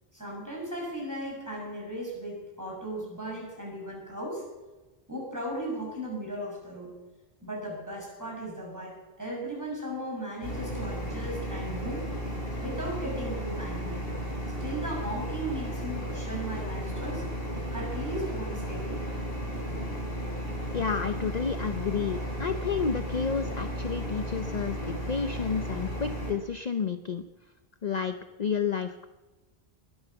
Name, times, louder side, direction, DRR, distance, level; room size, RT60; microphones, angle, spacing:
voice 1, 0.1-4.4 5.1-6.9 7.4-12.1 12.5-14.0 14.6-17.2 17.7-19.0, right 1 dB, 15° right, -2 dB, 6.3 m, -36 dB
sound 1, 10.4-26.3, equal, 70° left, 4.0 m, -34 dB
voice 2, 20.7-27.2 27.8-29.1, left 6 dB, 45° left, 9 dB, 0.8 m, -31 dB
21.0 x 9.6 x 7.0 m, 1.1 s
omnidirectional pair, 1.0 m